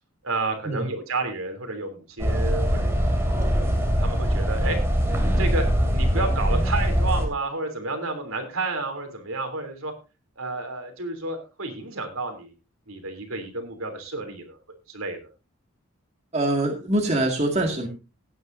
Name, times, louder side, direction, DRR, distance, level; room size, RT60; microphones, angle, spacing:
voice 1, 0.2-3.3 4.0-4.8 5.4-5.6 5.9-9.9 10.4-12.5 12.9-14.6 14.9-15.2, right 3 dB, 75° right, 5 dB, 3.2 m, -31 dB
sound 1, 2.2-7.3, equal, 10° right, 2.7 m, -22 dB
voice 2, 16.3-17.9, right 1 dB, 30° right, 1 dB, 2.1 m, -24 dB
18.0 x 9.4 x 2.7 m, 0.29 s
head